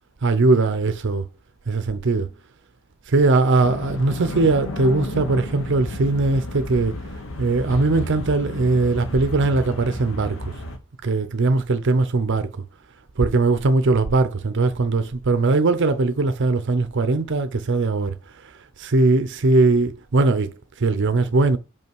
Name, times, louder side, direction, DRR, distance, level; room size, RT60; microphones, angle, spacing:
voice 1, 0.2-1.2 1.7-2.3 3.1-7.0 7.4-10.5 11.0-12.5 13.2-18.1 18.8-20.5 20.8-21.6, right 3 dB, 60° right, 0.6 m, -20 dB
sound 1, 3.6-10.8, left 1 dB, 65° left, 1.2 m, -32 dB
5.6 x 5.5 x 4.6 m
head